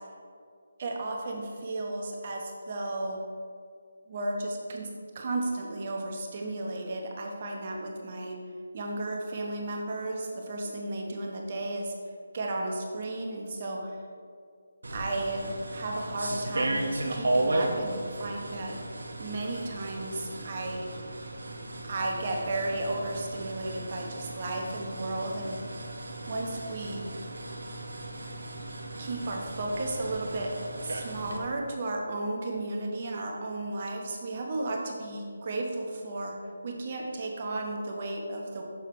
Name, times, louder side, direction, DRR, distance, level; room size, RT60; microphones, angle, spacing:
voice 1, 0.8-3.2 4.1-4.9 5.1-8.4 8.7-11.9 12.3-14.0 14.9-16.8 17.1-18.8 19.2-20.9 21.8-25.9 26.3-27.1 29.0-30.5 30.8-36.4 36.6-38.6, right 2 dB, 40° right, 0 dB, 1.0 m, -34 dB
sound 1, 14.8-31.4, right 2 dB, 70° right, 0.9 m, -35 dB
6.8 x 6.3 x 3.2 m, 2.2 s
figure-of-eight pair, 155°, 0 cm